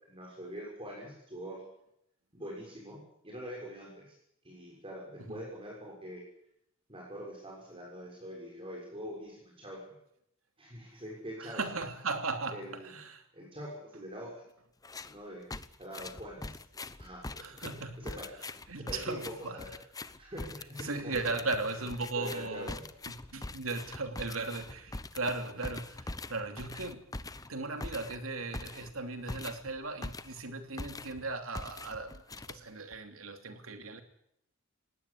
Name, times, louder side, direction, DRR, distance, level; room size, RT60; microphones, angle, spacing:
voice 1, 0.1-1.6 2.3-4.2 4.4-6.2 6.9-9.8 10.6-11.6 12.5-12.9 13.3-14.3 15.0-15.4 15.8-16.5 17.0-18.3 18.9-19.7 20.2-21.4 22.1-22.8, equal, 25° right, -2 dB, 6.5 m, -44 dB
voice 2, 11.4-13.2 17.4-18.0 18.7-19.6 20.2-20.3 20.8-22.7 23.1-27.0 27.5-32.2 32.5-34.0, right 3 dB, 80° right, 6 dB, 2.9 m, -37 dB
sound 1, 14.8-15.2 15.5-30.5 30.8-31.2 31.5-33.0, left 2 dB, 15° left, 0.8 m, -43 dB
20.0 x 17.5 x 10.0 m, 0.76 s
head